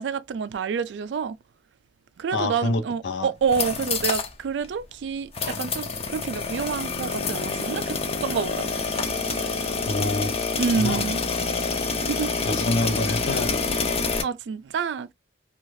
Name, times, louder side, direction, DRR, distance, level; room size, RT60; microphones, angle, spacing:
voice 1, 0.0-1.4 2.2-8.7 10.6-11.2 12.1-12.3 14.2-15.1, right 6 dB, 75° right, 0.3 m, -28 dB
voice 2, 2.3-3.3 9.4-9.5 9.9-10.5 10.8-11.1 12.4-14.0, left 2 dB, 80° left, 0.6 m, -27 dB
sound 1, 3.4-4.3 4.6-4.7 5.3-14.2, left 4 dB, 35° left, 0.5 m, -27 dB
2.6 x 2.4 x 3.0 m
head